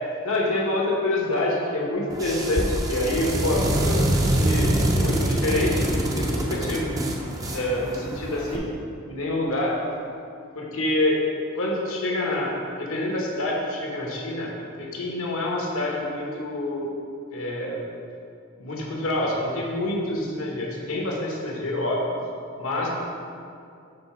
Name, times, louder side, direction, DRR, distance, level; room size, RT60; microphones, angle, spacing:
voice 1, 0.2-6.9 7.5-8.6 9.1-9.8 10.5-11.2 11.5-14.5 14.8-16.9 17.3-17.8 18.6-22.1 22.6-22.9, left 1 dB, 70° left, -2 dB, 1.1 m, -27 dB
sound 1, 2.1-8.6, right 1 dB, 15° right, 0.5 m, -25 dB
5.2 x 3.9 x 5.7 m, 2.5 s
head